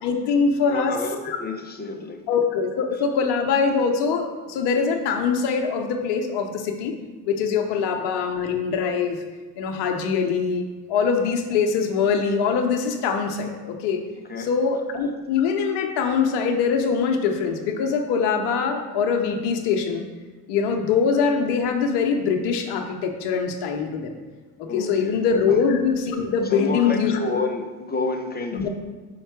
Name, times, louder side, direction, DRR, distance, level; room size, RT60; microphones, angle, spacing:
voice 1, 0.0-1.0 1.2-1.4 2.3-6.9 7.2-9.2 9.6-14.0 14.4-20.0 20.5-24.2 24.6-27.4 28.5-28.7, left 5 dB, 70° left, 4 dB, 0.9 m, -23 dB
voice 2, 0.7-2.2 14.3-14.5 24.7-25.2 26.5-28.7, left 3 dB, 20° left, 4 dB, 0.9 m, -29 dB
5.6 x 4.4 x 4.6 m, 1.3 s
supercardioid pair, 70°, 42 cm